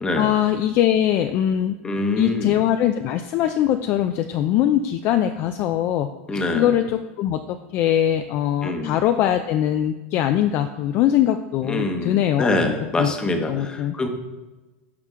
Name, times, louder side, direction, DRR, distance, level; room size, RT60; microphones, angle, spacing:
voice 1, 0.1-1.8 2.2-12.5 13.0-13.1 13.5-13.9, left 11 dB, 35° left, 8 dB, 0.4 m, -22 dB
voice 2, 1.8-2.7 6.3-6.7 8.6-9.0 11.7-14.1, left 2 dB, 10° left, 5 dB, 0.9 m, -25 dB
10.5 x 6.0 x 3.7 m, 1.2 s
supercardioid pair, 155°, 7 cm